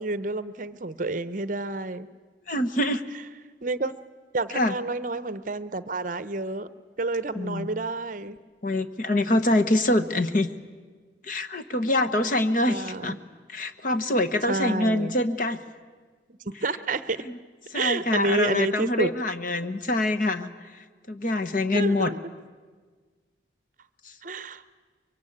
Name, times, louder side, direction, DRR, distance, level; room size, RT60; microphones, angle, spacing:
voice 1, 0.0-2.1 3.6-3.9 4.3-6.7 7.0-8.4 12.7-13.2 14.5-15.2 16.5-17.2 17.7-19.1 21.7-22.2 24.2-24.6, right 2 dB, 45° right, 14 dB, 0.8 m, -29 dB
voice 2, 2.5-3.0 4.5-4.7 7.3-7.7 8.6-10.5 11.2-13.2 13.5-15.6 17.2-17.4 17.7-22.1, left 1 dB, 45° left, 7 dB, 1.1 m, -25 dB
24.5 x 23.0 x 8.6 m, 1.5 s
head